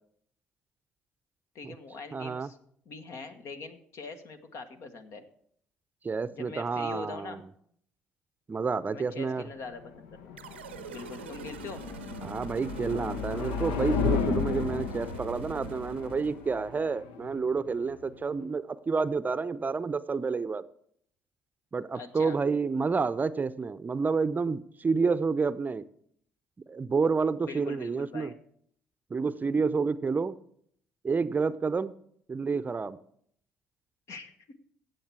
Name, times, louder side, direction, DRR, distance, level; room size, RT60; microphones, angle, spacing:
voice 1, 1.5-2.6 2.8-5.2 6.3-7.4 8.9-10.3 10.9-11.8 21.9-22.4 27.4-28.4 34.1-34.5, left 4 dB, 60° left, 8 dB, 1.4 m, -43 dB
voice 2, 2.1-2.5 6.0-7.4 8.5-9.5 12.2-20.6 21.7-25.8 26.7-28.3 29.1-30.4 31.0-31.9 32.3-33.0, right 4 dB, 30° right, 15 dB, 0.6 m, -29 dB
sound 1, 9.5-18.5, left 6 dB, 75° left, 0.8 m, -34 dB
sound 2, 10.4-16.8, right 7 dB, 90° right, 0.6 m, -44 dB
16.0 x 7.8 x 4.7 m, 0.66 s
hypercardioid pair, 50°, 6 cm